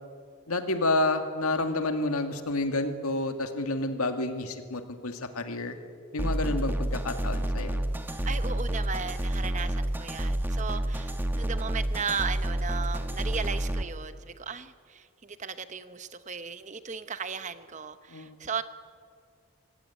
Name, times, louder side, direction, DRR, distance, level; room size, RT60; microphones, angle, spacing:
voice 1, 0.5-5.8 6.1-7.8 18.1-18.4, left 2 dB, 85° left, 7 dB, 2.1 m, -29 dB
sound 1, 6.2-13.8, right 1 dB, 10° right, 1.0 m, -29 dB
voice 2, 8.3-18.6, right 6 dB, 35° right, 12 dB, 0.8 m, -36 dB
24.5 x 16.0 x 9.4 m, 2.2 s
head